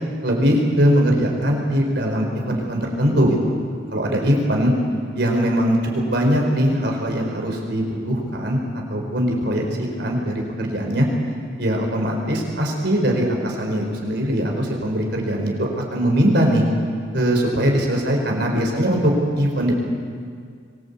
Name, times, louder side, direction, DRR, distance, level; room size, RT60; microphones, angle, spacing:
voice 1, 0.2-3.5 3.9-4.7 5.1-5.8 6.0-8.6 8.9-9.6 10.0-11.1 11.6-16.6 17.1-19.7, equal, 60° right, 1 dB, 4.9 m, -21 dB
25.5 x 20.0 x 8.5 m, 2.1 s
head